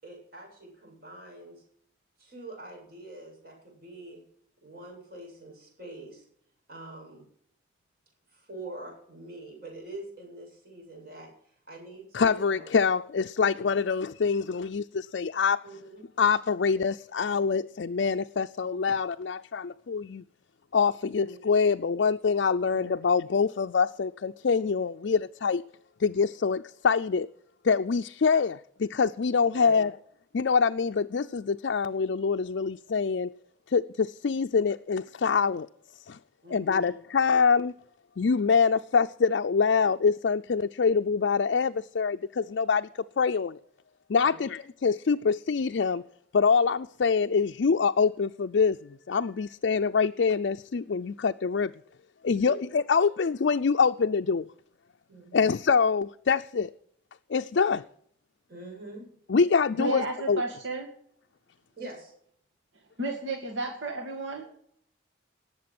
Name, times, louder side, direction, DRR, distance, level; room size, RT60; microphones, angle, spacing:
voice 1, 0.0-1.6 2.2-4.2 4.6-6.2 6.7-7.3 8.3-12.8 15.6-16.0 21.2-21.4 22.7-22.9 29.5-29.8 36.4-36.9 44.2-44.4 52.3-52.5 53.0-53.1 55.1-55.6 58.5-59.1 61.8-62.1, right 2 dB, 50° right, 7.4 m, -44 dB
voice 2, 12.1-15.6 16.2-20.2 20.7-25.6 26.0-27.3 27.6-29.9 30.3-33.3 33.7-35.7 36.1-36.2 36.5-37.7 38.2-43.6 44.1-46.0 46.3-51.7 52.2-54.5 55.3-56.7 57.3-57.8 59.3-60.4, left 5 dB, 65° left, 0.4 m, -25 dB
voice 3, 59.8-60.9 63.0-64.4, right 2 dB, 75° right, 2.3 m, -32 dB
19.0 x 7.6 x 6.0 m
head